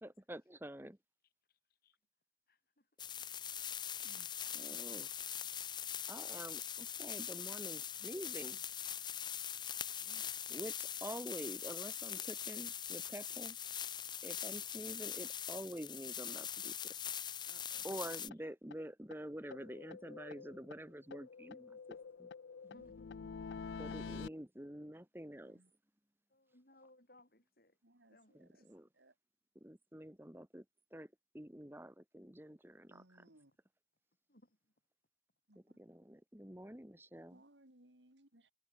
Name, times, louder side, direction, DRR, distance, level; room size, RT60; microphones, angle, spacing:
voice 1, 0.0-1.0 4.5-5.1 6.1-8.6 10.5-13.5 14.2-16.7 17.8-22.3 23.8-25.6 28.3-28.9 29.5-30.6 30.9-31.1 31.3-33.0 35.7-37.4, right 1 dB, 10° right, 1.4 m, -48 dB
voice 2, 1.5-2.0 2.5-2.9 10.0-10.3 17.4-18.1 22.6-23.1 26.3-27.8 28.1-28.7 34.3-34.7, left 1 dB, 55° left, 6.9 m, -65 dB
sound 1, 3.0-18.3, left 9 dB, 25° left, 0.7 m, -42 dB
voice 3, 4.0-4.3 4.7-4.8 8.9-9.0 13.0-13.1 22.7-22.9 23.2-23.3 25.4-25.7 27.8-28.7 28.9-29.1 32.9-33.5 35.5-35.8 37.3-38.5, right 1 dB, 85° right, 3.8 m, -64 dB
sound 2, 17.9-18.0 18.3-18.4 18.7-18.8 19.1-19.2 19.5-20.8 21.1-24.3, left 5 dB, 80° left, 0.5 m, -48 dB
head